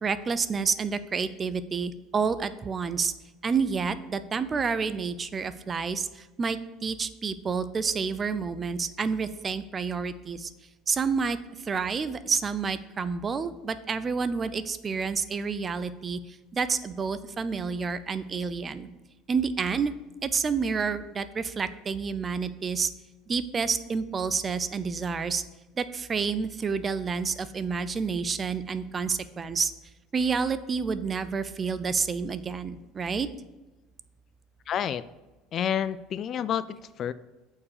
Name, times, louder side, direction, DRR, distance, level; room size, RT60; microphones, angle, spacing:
voice 1, 0.0-3.1 3.4-10.5 10.9-18.9 19.3-19.9 20.2-22.9 23.3-25.4 25.8-29.7 30.1-33.3, right 5 dB, 25° right, 14 dB, 0.5 m, -29 dB
voice 2, 34.7-35.0 35.5-37.1, left 9 dB, 40° left, 16 dB, 0.3 m, -29 dB
8.4 x 4.6 x 6.8 m, 1.1 s
supercardioid pair, 125°, 0 cm